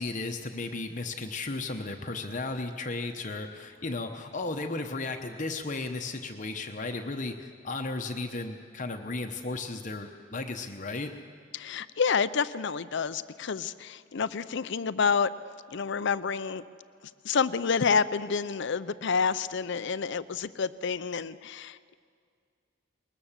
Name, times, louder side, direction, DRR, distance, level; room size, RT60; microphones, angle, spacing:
voice 1, 0.0-11.1, left 3 dB, 35° left, 4 dB, 1.0 m, -35 dB
voice 2, 11.5-15.3 15.7-16.6 17.2-21.9, left 5 dB, 60° left, 15 dB, 0.5 m, -28 dB
21.0 x 20.0 x 7.4 m, 2.2 s
head